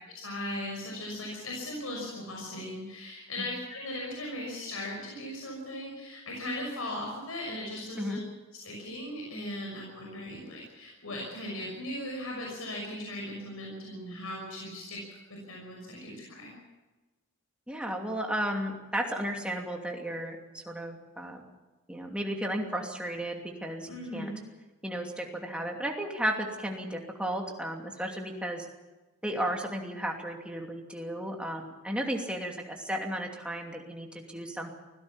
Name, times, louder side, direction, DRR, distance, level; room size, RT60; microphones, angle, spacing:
voice 1, 0.1-8.2 8.5-16.5 23.9-24.4, left 1 dB, 75° left, -1 dB, 5.9 m, -38 dB
voice 2, 17.7-21.4 21.9-24.3 24.8-28.7 29.2-34.7, right 1 dB, 5° right, 1 dB, 2.7 m, -34 dB
24.5 x 17.0 x 7.3 m, 1.2 s
head